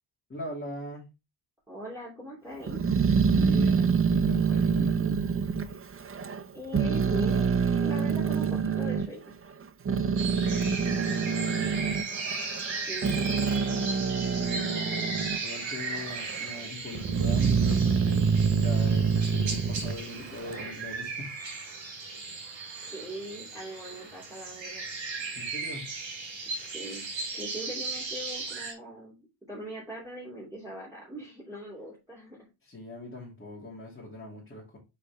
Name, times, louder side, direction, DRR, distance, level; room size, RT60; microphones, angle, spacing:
voice 1, 0.3-1.0 3.3-5.2 10.1-11.9 14.3-21.3 25.3-25.9 32.6-34.8, left 1 dB, 25° left, -6 dB, 2.6 m, -41 dB
voice 2, 1.7-2.8 6.5-7.5 7.8-9.3 12.7-13.3 22.8-24.9 26.5-27.0 27.3-32.4, right 1 dB, 5° right, -8 dB, 3.1 m, -41 dB
Growling, 2.7-6.4 6.7-9.1 9.6-15.4 15.8-16.5 16.9-20.7, right 6 dB, 30° right, 0.5 m, -26 dB
sound 1, 10.2-28.7, right 4 dB, 70° right, 3.6 m, -37 dB
6.8 x 5.1 x 3.4 m, 0.26 s
wide cardioid pair, 140°, 48 cm